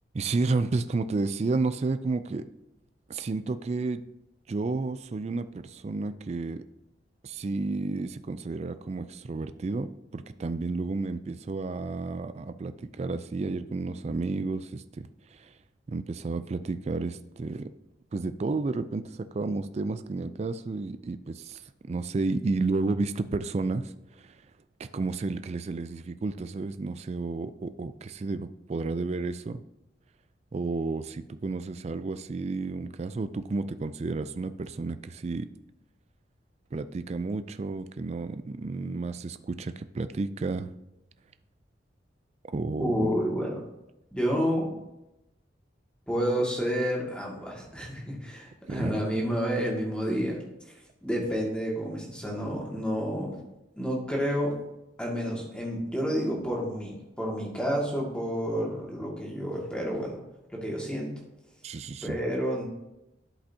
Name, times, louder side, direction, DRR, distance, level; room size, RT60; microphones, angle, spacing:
voice 1, 0.1-2.5 3.1-4.0 4.5-6.6 7.2-15.5 15.9-17.7 18.1-24.4 24.8-29.6 30.5-35.5 36.7-40.7 42.5-43.1 48.7-49.0 61.6-62.2, right 3 dB, 35° right, 12 dB, 0.3 m, -31 dB
voice 2, 42.8-43.5 44.1-44.7 46.1-50.4 51.0-53.4 53.8-54.6 55.0-60.2 60.5-61.1 62.0-62.6, equal, 5° left, -2 dB, 1.8 m, -29 dB
12.0 x 5.2 x 2.7 m, 0.91 s
head